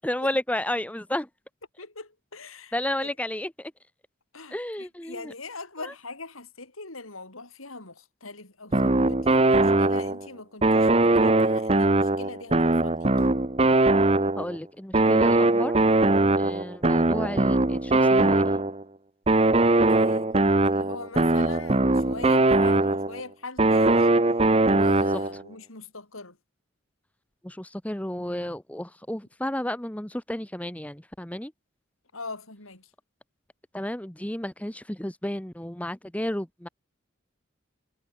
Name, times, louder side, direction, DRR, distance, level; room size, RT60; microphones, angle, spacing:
voice 1, 0.0-1.3 2.7-3.7 4.5-5.3 5.8-5.9 14.4-15.7 16.4-18.6 27.4-31.5 33.7-36.7, left 1 dB, 5° left, 0.8 m, -32 dB
voice 2, 1.8-3.1 4.3-13.1 19.6-20.3 20.6-24.1 24.6-26.4 32.1-32.9, left 3 dB, 90° left, 6.4 m, -41 dB
sound 1, 8.7-10.3 10.6-14.6 14.9-18.8 19.3-23.2 23.6-25.4, right 2 dB, 30° right, 0.9 m, -21 dB
head